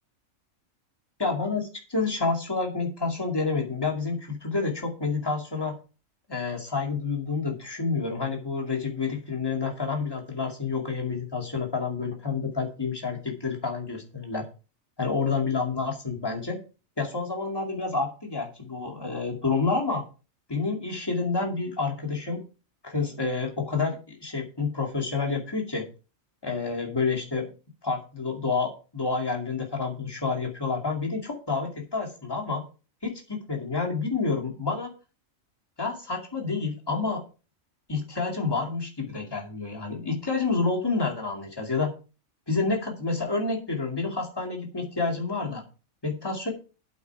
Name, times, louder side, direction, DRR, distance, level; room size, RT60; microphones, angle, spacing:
voice 1, 1.2-5.8 6.3-14.4 15.0-16.6 17.0-20.0 20.5-22.4 22.8-25.9 26.4-27.5 27.8-32.6 33.0-35.0 35.8-37.2 37.9-41.9 42.5-45.6 46.0-46.5, left 4 dB, 15° left, 1 dB, 2.4 m, -29 dB
8.5 x 8.5 x 4.7 m, 0.33 s
omnidirectional pair, 1.4 m